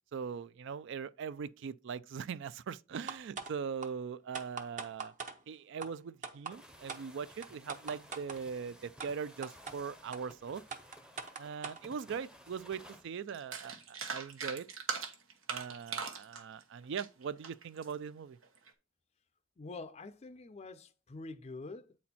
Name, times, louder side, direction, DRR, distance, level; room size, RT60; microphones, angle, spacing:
voice 1, 0.1-5.1 5.5-10.6 11.4-14.7 15.5-18.4, right 6 dB, 65° right, 0.4 m, -41 dB
sound 1, 3.1-3.5 3.8-3.9 4.3-5.3 5.8-5.9 6.2-6.5 6.9-7.0 7.4-8.4 9.0-9.1 9.4-9.7 10.1-10.2 10.7-11.8, right 5 dB, 40° right, 0.9 m, -41 dB
sound 2, 6.5-13.1, equal, 5° right, 0.7 m, -56 dB
sound 3, 12.9-13.0 13.3-18.0 18.4-18.7, right 5 dB, 90° right, 1.2 m, -40 dB
voice 2, 19.6-22.0, left 3 dB, 30° left, 0.4 m, -46 dB
8.5 x 4.3 x 4.2 m
head